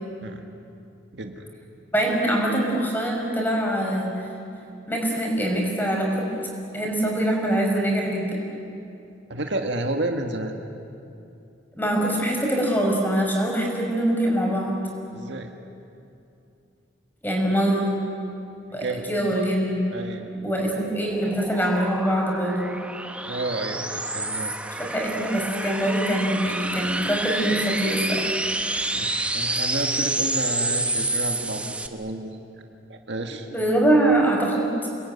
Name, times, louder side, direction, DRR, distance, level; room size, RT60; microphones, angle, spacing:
voice 1, 1.1-1.5 9.3-10.5 15.1-15.5 18.7-19.1 19.9-20.2 23.3-24.5 28.9-32.4 32.9-33.5, right 2 dB, 65° right, 4 dB, 1.9 m, -31 dB
voice 2, 1.9-4.1 4.9-6.1 6.7-8.4 11.8-14.8 17.2-17.9 18.7-19.8 20.4-22.7 24.8-28.3 33.5-34.9, right 1 dB, 10° left, 0 dB, 5.3 m, -23 dB
sound 1, 20.3-31.9, right 2 dB, 5° right, 1.0 m, -29 dB
28.5 x 20.0 x 9.8 m, 2.7 s
head